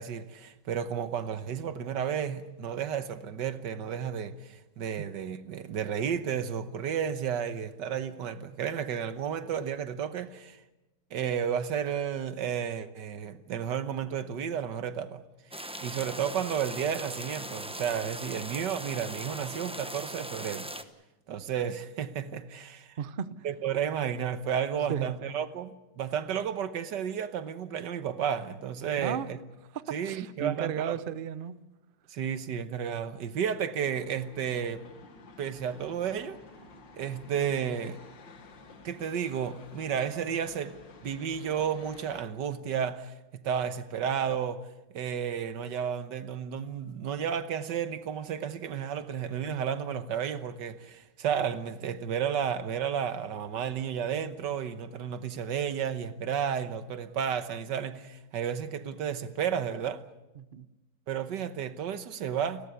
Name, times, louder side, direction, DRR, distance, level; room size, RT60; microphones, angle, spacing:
voice 1, 0.0-10.6 11.1-15.2 15.5-20.7 21.3-23.0 23.4-29.4 29.9-31.0 32.1-34.8 35.4-36.4 36.9-38.0 38.8-44.7 44.9-60.0 61.1-62.6, right 8 dB, 75° right, 1.7 m, -32 dB
sound 1, 15.5-20.8, right 1 dB, 5° right, 0.5 m, -39 dB
voice 2, 23.0-23.3 24.9-25.1 29.0-29.3 29.7-31.6 60.4-60.7, right 8 dB, 50° right, 0.6 m, -34 dB
sound 2, 33.8-42.2, left 3 dB, 85° left, 2.5 m, -52 dB
30.0 x 14.0 x 8.3 m
omnidirectional pair, 2.0 m